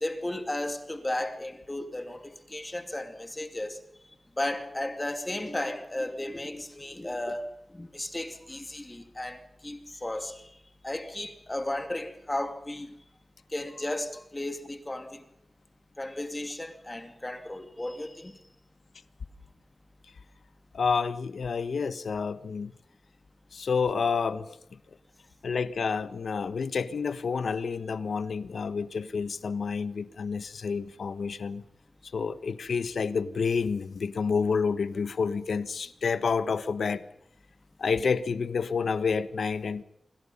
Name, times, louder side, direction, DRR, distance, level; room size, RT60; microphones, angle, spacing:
voice 1, 0.0-3.8 4.4-10.5 10.8-12.9 13.5-15.2 16.0-18.4, left 1 dB, 20° left, 2.6 m, -34 dB
voice 2, 20.7-22.7 23.5-24.6 25.4-31.6 32.1-37.0 37.8-39.8, left 5 dB, 90° left, 1.3 m, -29 dB
28.5 x 26.0 x 5.6 m
wide cardioid pair, 130°, 0 cm